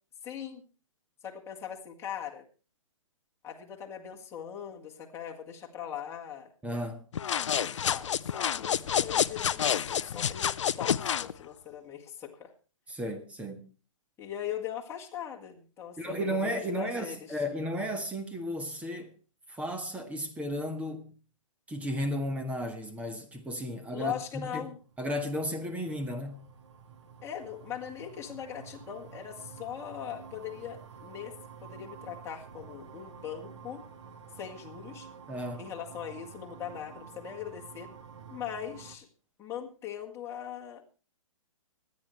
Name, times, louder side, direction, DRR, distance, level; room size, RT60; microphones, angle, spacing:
voice 1, 0.2-0.6 1.2-2.4 3.4-6.5 7.6-12.5 14.2-17.4 23.9-24.8 27.2-33.8 34.4-35.1 35.6-37.9 38.3-39.1 39.4-40.8, left 9 dB, 15° left, 1.9 m, -40 dB
voice 2, 6.6-7.0 12.9-13.7 16.0-19.1 19.5-21.1 21.7-24.7 25.0-26.5 35.3-35.7, equal, 10° right, 1.5 m, -34 dB
sound 1, 7.1-11.3, left 8 dB, 65° left, 0.6 m, -29 dB
sound 2, 24.7-39.0, right 6 dB, 60° right, 1.6 m, -49 dB
24.5 x 9.7 x 3.2 m
figure-of-eight pair, 125°, 17 cm